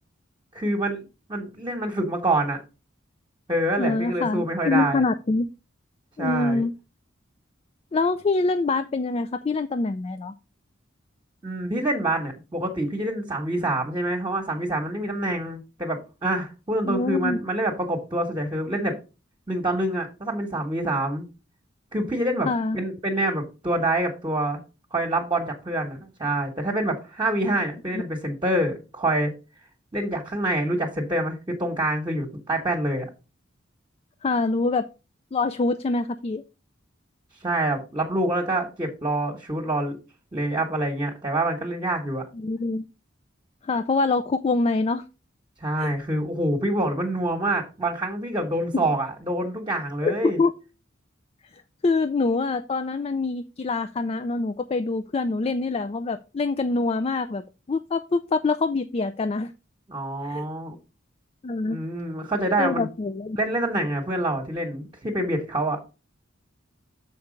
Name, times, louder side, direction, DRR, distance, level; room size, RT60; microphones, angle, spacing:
voice 1, 0.5-2.6 3.5-5.0 6.2-6.6 11.4-19.0 19.5-21.2 21.9-24.6 24.9-29.3 29.9-33.1 37.4-40.0 40.3-42.2 45.6-50.4 59.9-60.7 61.7-62.9 63.3-65.8, right 1 dB, 25° right, 1 dB, 1.2 m, -26 dB
voice 2, 3.8-5.5 6.2-6.7 7.9-10.3 16.8-17.4 22.5-22.8 27.9-28.0 34.2-34.9 35.3-36.4 42.3-42.8 43.6-45.0 45.8-45.9 48.7-48.9 50.0-50.5 51.8-59.5 60.2-60.5 61.4-61.8 62.6-63.4, left 3 dB, 30° left, 10 dB, 0.4 m, -25 dB
6.8 x 4.5 x 5.1 m, 0.30 s
head